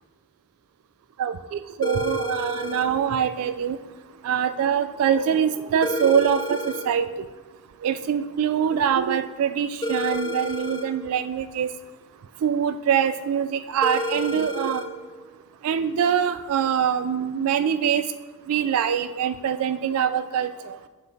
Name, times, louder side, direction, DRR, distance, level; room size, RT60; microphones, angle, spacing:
voice 1, 1.2-3.8 4.2-6.6 6.9-7.1 7.8-11.7 12.4-14.8 15.6-18.0 18.5-20.5, right 8 dB, 75° right, 12 dB, 0.3 m, -24 dB
sound 1, 1.8-2.9 5.8-6.9 9.8-10.9 13.8-14.9, left 1 dB, 20° left, 0.5 m, -29 dB
7.5 x 5.6 x 4.0 m, 1.3 s
head